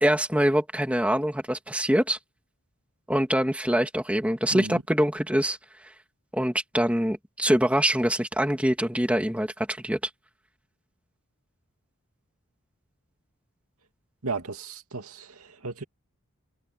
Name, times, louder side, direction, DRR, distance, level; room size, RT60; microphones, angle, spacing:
voice 1, 0.0-2.2 3.1-5.6 6.3-10.0, equal, 5° right, 2.9 m, -24 dB
voice 2, 4.5-4.8 14.2-15.8, right 3 dB, 90° right, 2.6 m, -35 dB
head